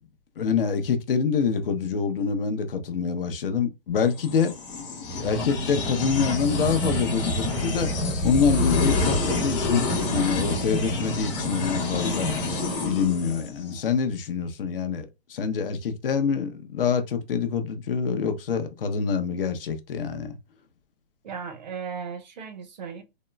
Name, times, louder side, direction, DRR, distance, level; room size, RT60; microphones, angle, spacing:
voice 1, 0.4-4.5 5.2-7.9 8.2-12.3 12.8-20.3, left 6 dB, 60° left, 0.7 m, -26 dB
sound 1, 4.1-13.8, left 2 dB, 30° left, 1.1 m, -27 dB
voice 2, 21.2-23.0, right 6 dB, 45° right, 0.6 m, -36 dB
3.6 x 2.0 x 2.2 m
hypercardioid pair, 160°, 31 cm